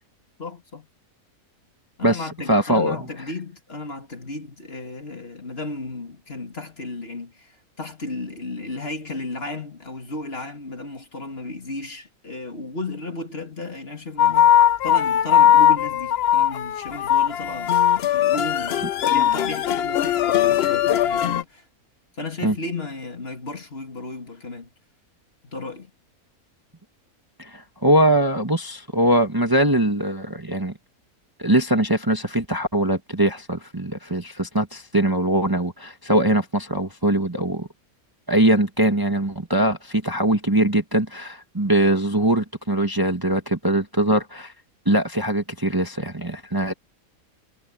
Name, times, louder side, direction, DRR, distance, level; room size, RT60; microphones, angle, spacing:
voice 1, 0.4-0.9 2.0-21.6 22.2-24.7 25.4-25.9, left 2 dB, 40° left, 2.9 m, -34 dB
voice 2, 2.5-2.9 22.4-22.5 27.4-30.7 31.4-37.7 38.3-44.5 44.8-46.7, right 1 dB, 15° right, 1.5 m, -21 dB
sound 1, 14.2-21.4, left 10 dB, 60° left, 0.7 m, -19 dB
omnidirectional pair, 1.5 m